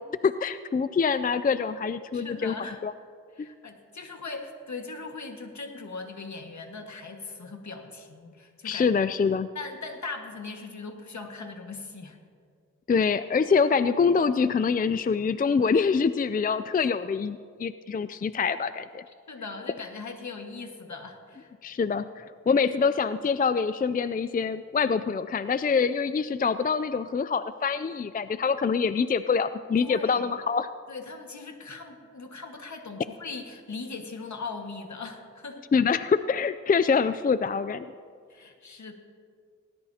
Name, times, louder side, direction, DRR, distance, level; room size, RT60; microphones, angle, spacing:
voice 1, 0.0-2.6 2.8-2.9 3.4-3.5 8.6-9.5 12.9-19.0 21.6-30.7 35.7-37.9, left 5 dB, 30° left, 13 dB, 0.4 m, -25 dB
voice 2, 2.1-2.8 3.3-9.0 9.5-12.2 19.3-21.5 29.8-30.3 30.9-35.7 38.3-38.9, left 4 dB, 65° left, 3 dB, 1.7 m, -39 dB
19.5 x 18.0 x 2.9 m, 2.1 s
wide cardioid pair, 65°, 30 cm